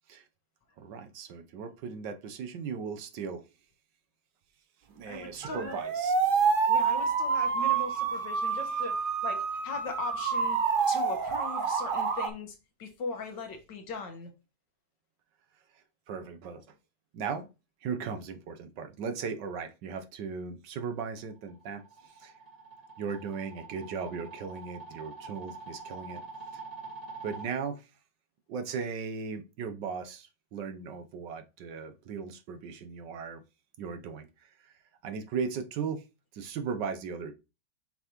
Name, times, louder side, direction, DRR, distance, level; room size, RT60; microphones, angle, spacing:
voice 1, 0.8-3.4 4.9-6.1 15.7-16.7 17.1-17.5 17.8-22.4 23.0-26.2 26.5-26.6 27.2-27.9 28.5-33.4 33.8-34.7 35.0-36.0 36.3-37.3, right 6 dB, 75° right, 1.4 m, -37 dB
voice 2, 5.1-5.8 6.7-10.6 10.9-14.3, left 4 dB, 70° left, 2.0 m, -39 dB
sound 1, 5.4-12.3, right 5 dB, 55° right, 0.5 m, -28 dB
sound 2, 21.3-27.5, right 4 dB, 20° right, 1.6 m, -45 dB
6.6 x 5.7 x 3.0 m
omnidirectional pair, 2.0 m